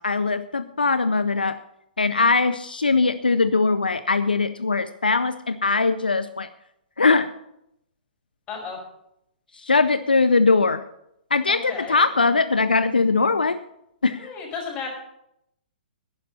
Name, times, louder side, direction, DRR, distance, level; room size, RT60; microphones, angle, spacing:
voice 1, 0.0-1.6 2.0-6.5 7.0-7.3 9.5-10.8 11.3-13.6 14.0-14.3, left 4 dB, 80° left, 12 dB, 0.6 m, -21 dB
voice 2, 8.5-8.8 11.5-12.0 14.2-14.9, left 5 dB, 25° left, 0 dB, 5.3 m, -33 dB
11.0 x 10.5 x 6.6 m, 0.79 s
figure-of-eight pair, 120°, 5 cm